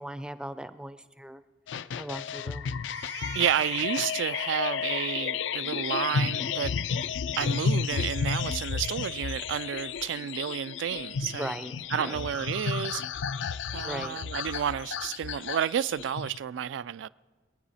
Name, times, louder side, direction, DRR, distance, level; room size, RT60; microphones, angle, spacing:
voice 1, 0.0-1.4 2.0-2.8 11.4-11.8 12.0-12.2 13.8-14.2, right 1 dB, 5° right, 0.4 m, -38 dB
sound 1, 1.7-16.4, left 6 dB, 85° left, 0.4 m, -32 dB
Crying sobbing, 2.9-4.1 4.5-4.6 4.8-5.2 7.0-7.1 7.6-8.4 8.7-8.9 9.2-9.3 9.7-10.4, right 7 dB, 65° right, 0.8 m, -49 dB
voice 2, 3.3-6.7 7.4-11.5 11.9-13.0 13.7-17.1, right 9 dB, 85° right, 0.3 m, -31 dB
22.5 x 9.4 x 4.1 m
head